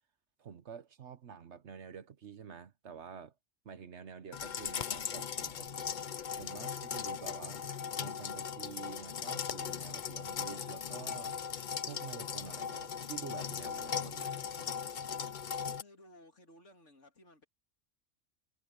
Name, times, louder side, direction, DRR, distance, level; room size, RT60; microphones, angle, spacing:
voice 1, 0.4-3.3 3.6-5.7 6.3-7.6 8.0-11.4 11.8-14.7, right 7 dB, 75° right, 1.3 m, -48 dB
sound 1, 4.3-15.8, left 7 dB, 50° left, 0.8 m, -38 dB
voice 2, 15.8-17.4, left 1 dB, 90° left, 3.6 m, -58 dB
omnidirectional pair, 1.2 m